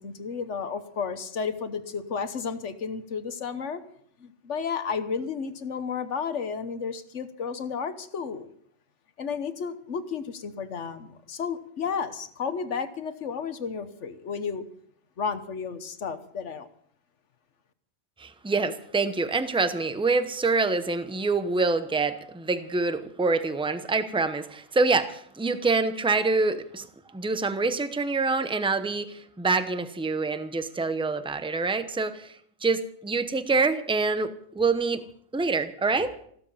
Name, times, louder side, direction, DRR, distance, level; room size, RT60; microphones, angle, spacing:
voice 1, 0.0-3.8 4.2-8.5 9.2-14.7 15.2-16.7, left 6 dB, 70° left, 11 dB, 1.4 m, -32 dB
voice 2, 18.2-26.9 27.1-32.3 32.6-35.0 35.3-36.3, right 3 dB, 5° right, 10 dB, 0.7 m, -26 dB
15.5 x 13.0 x 5.6 m, 0.65 s
omnidirectional pair, 1.3 m